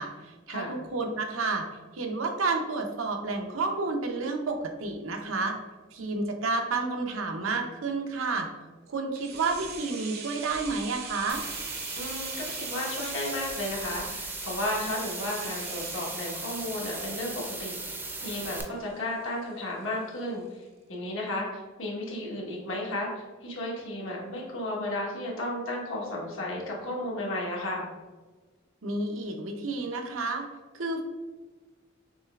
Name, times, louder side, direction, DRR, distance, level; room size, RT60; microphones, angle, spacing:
voice 1, 0.0-1.7 1.9-5.6 5.9-8.5 8.9-11.4 28.8-30.5 30.7-31.0, right 3 dB, 90° right, 3 dB, 0.7 m, -30 dB
sound 1, 9.1-19.0 19.3-19.4, right 5 dB, 50° right, 0.6 m, -42 dB
sound 2, 11.3-18.6, right 2 dB, 10° right, 0.5 m, -37 dB
voice 2, 12.0-20.6 20.9-23.1 23.4-27.9, left 1 dB, 75° left, -4 dB, 1.4 m, -33 dB
6.1 x 3.3 x 2.4 m, 1.3 s
head